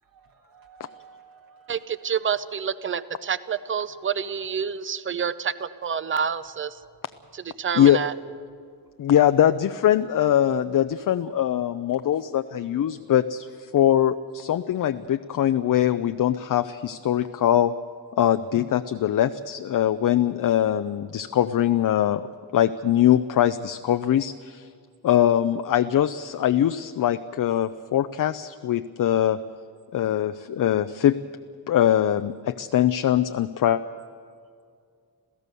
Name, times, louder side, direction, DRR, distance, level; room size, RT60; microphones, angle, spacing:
voice 1, 0.1-2.1 3.4-3.5, right 6 dB, 60° right, 2 dB, 2.0 m, -53 dB
voice 2, 1.7-6.8 7.3-8.1, right 7 dB, 30° right, 15 dB, 0.7 m, -28 dB
voice 3, 9.0-17.7 18.2-22.2 22.5-24.7 25.0-29.4 29.9-31.2 31.7-33.8, left 11 dB, 55° left, 10 dB, 0.6 m, -22 dB
27.5 x 16.0 x 6.9 m, 2.2 s
wide cardioid pair, 125°, 39 cm